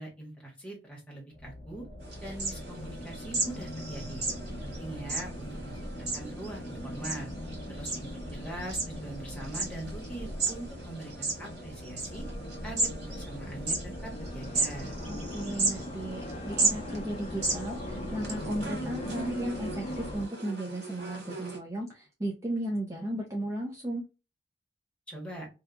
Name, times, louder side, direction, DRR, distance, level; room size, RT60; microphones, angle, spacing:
voice 1, 0.0-1.8 2.2-4.2 4.6-5.8 6.1-7.3 7.7-12.2 12.6-14.9 25.1-25.5, right 1 dB, 5° left, -2 dB, 1.2 m, -42 dB
sound 1, 1.3-20.3, equal, 40° left, 0.6 m, -40 dB
sound 2, 2.0-21.6, right 3 dB, 65° right, 1.6 m, -36 dB
voice 2, 15.1-24.0, right 1 dB, 15° right, -1 dB, 0.5 m, -35 dB
2.8 x 2.3 x 2.3 m, 0.29 s
head